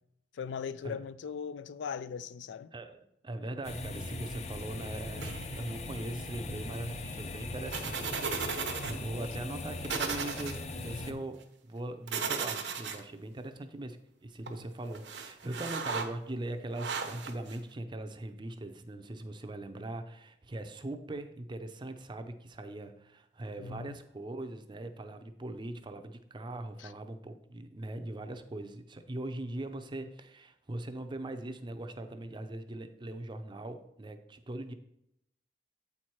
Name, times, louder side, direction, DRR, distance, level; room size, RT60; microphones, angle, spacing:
voice 1, 0.3-2.7 10.9-11.2 23.6-24.0 26.8-26.9, left 6 dB, 90° left, 0.4 m, -39 dB
voice 2, 2.7-34.7, right 1 dB, 25° right, 0.5 m, -41 dB
sound 1, 3.6-11.1, left 2 dB, 40° left, 0.5 m, -40 dB
sound 2, 5.2-5.7 7.7-8.9 9.2-9.3 9.8-10.6 12.1-13.0 14.5-14.6 14.9-16.0 16.7-17.6, right 5 dB, 75° right, 0.8 m, -35 dB
8.3 x 4.6 x 4.3 m
head